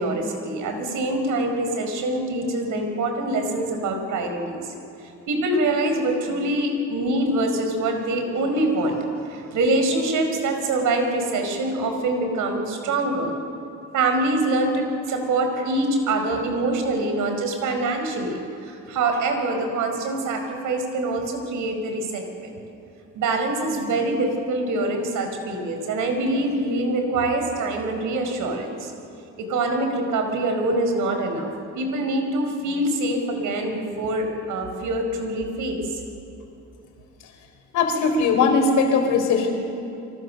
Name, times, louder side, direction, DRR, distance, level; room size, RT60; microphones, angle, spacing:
voice 1, 0.0-4.7 5.0-13.3 13.9-22.6 23.1-28.9 29.4-36.0, right 2 dB, 80° right, 5 dB, 4.8 m, -25 dB
voice 2, 37.7-39.5, left 4 dB, 85° left, 4 dB, 4.0 m, -19 dB
27.5 x 24.5 x 6.7 m, 2.9 s
cardioid pair, 90°, 30 cm